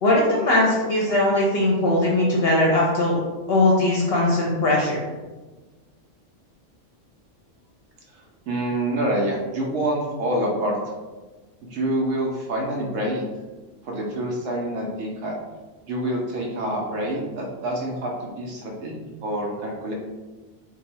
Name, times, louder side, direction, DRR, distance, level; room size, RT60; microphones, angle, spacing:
voice 1, 0.0-3.2 3.5-5.1, left 1 dB, 60° left, -4 dB, 0.8 m, -20 dB
voice 2, 8.5-10.8 11.7-13.2 13.8-15.3 15.9-19.9, right 1 dB, 85° right, -2 dB, 1.0 m, -26 dB
2.6 x 2.6 x 4.2 m, 1.2 s
omnidirectional pair, 1.3 m